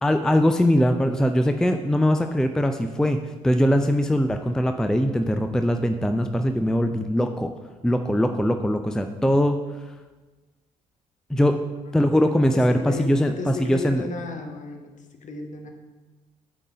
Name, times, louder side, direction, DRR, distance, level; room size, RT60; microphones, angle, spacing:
voice 1, 0.0-7.5 7.8-9.6 11.3-11.6 11.9-14.0, equal, 5° left, 7 dB, 0.5 m, -21 dB
voice 2, 12.5-15.7, left 3 dB, 45° left, 5 dB, 1.2 m, -35 dB
9.0 x 4.0 x 5.2 m, 1.2 s
hypercardioid pair, 50°, 18 cm